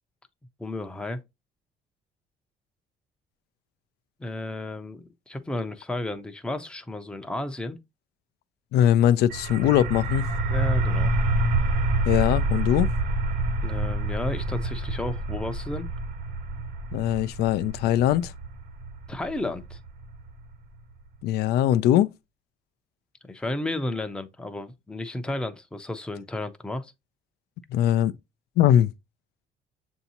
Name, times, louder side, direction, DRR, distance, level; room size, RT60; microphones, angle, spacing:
voice 1, 0.6-1.2 4.2-7.8 10.5-11.1 13.6-15.9 19.1-19.8 23.2-26.9, left 2 dB, 5° left, 0.5 m, -32 dB
voice 2, 8.7-10.3 12.0-12.9 16.9-18.3 21.2-22.1 27.7-28.1 28.6-28.9, left 11 dB, 75° left, 0.4 m, -21 dB
sound 1, 9.3-20.8, right 2 dB, 85° right, 1.2 m, -27 dB
7.0 x 2.7 x 2.7 m
cardioid pair, 110°, 17 cm